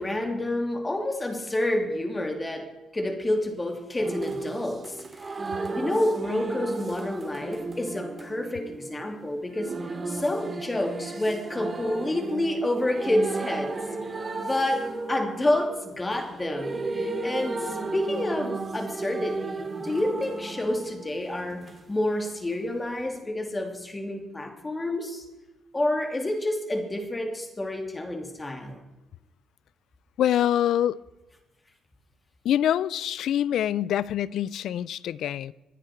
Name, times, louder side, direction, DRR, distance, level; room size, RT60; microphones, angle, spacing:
voice 1, 0.0-5.4 5.7-13.8 14.4-25.2 25.7-28.8, left 1 dB, 20° left, 2.9 m, -29 dB
sound 1, 4.0-21.8 23.1-23.2, right 3 dB, 30° right, 2.3 m, -34 dB
voice 2, 30.2-31.0 32.4-35.5, left 11 dB, 75° left, 0.4 m, -25 dB
24.5 x 10.0 x 4.6 m
cardioid pair, 90°, 0 cm